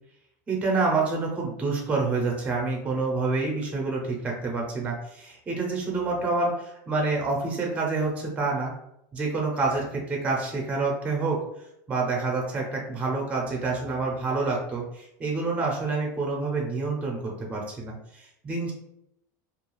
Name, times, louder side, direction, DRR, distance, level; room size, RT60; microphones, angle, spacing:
voice 1, 0.5-8.7 9.1-11.4 11.9-18.7, right 3 dB, 15° right, -1 dB, 0.5 m, -27 dB
2.4 x 2.3 x 3.0 m, 0.78 s
supercardioid pair, 155°, 10 cm